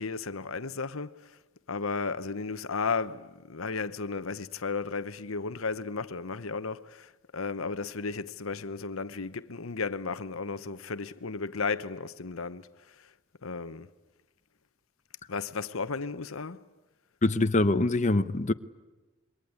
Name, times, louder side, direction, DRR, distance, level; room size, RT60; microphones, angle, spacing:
voice 1, 0.0-1.4 1.7-13.1 13.4-13.9 15.3-16.6, left 4 dB, 90° left, 1.0 m, -34 dB
voice 2, 17.2-18.5, left 2 dB, 35° left, 0.9 m, -24 dB
27.5 x 22.5 x 9.6 m
head